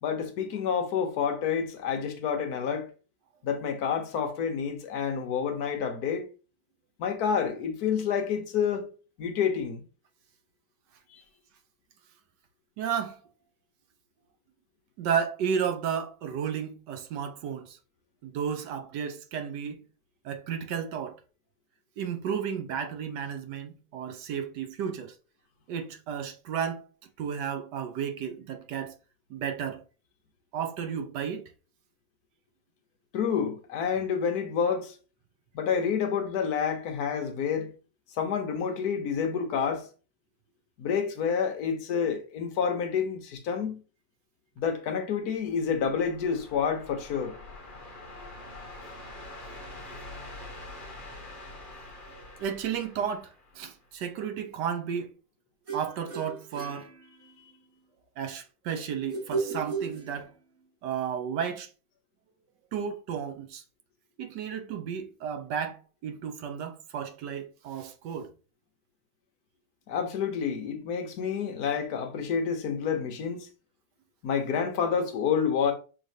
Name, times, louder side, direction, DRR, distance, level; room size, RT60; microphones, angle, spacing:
voice 1, 0.0-2.9 3.4-6.3 7.0-8.9 9.2-9.8 11.1-11.2 33.1-35.0 35.5-37.7 38.2-39.9 40.8-43.8 44.6-47.3 69.9-73.5 74.2-75.7, left 7 dB, 65° left, 1.0 m, -28 dB
voice 2, 12.8-13.2 15.0-17.8 18.2-19.8 20.2-21.2 22.0-25.1 25.7-26.9 27.2-28.9 29.3-29.8 30.5-31.4 52.4-55.1 55.7-56.9 58.2-60.3 60.8-61.7 62.7-63.6 64.2-68.3, right 7 dB, 70° right, 1.0 m, -33 dB
sound 1, 45.4-53.9, left 2 dB, 35° left, 0.9 m, -45 dB
sound 2, 55.7-57.6 59.1-60.6, right 4 dB, 45° right, 1.7 m, -35 dB
6.4 x 3.0 x 2.7 m
omnidirectional pair, 2.3 m